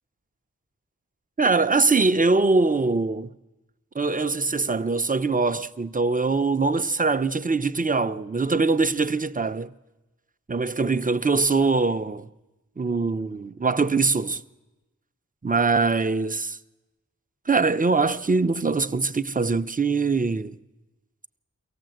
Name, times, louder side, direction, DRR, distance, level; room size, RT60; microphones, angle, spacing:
voice 1, 1.4-3.3 3.9-9.7 10.5-12.3 12.8-14.4 15.4-16.6 17.5-20.6, right 3 dB, 25° right, 0.7 m, -23 dB
23.5 x 17.5 x 7.8 m
wide cardioid pair, 45°, 33 cm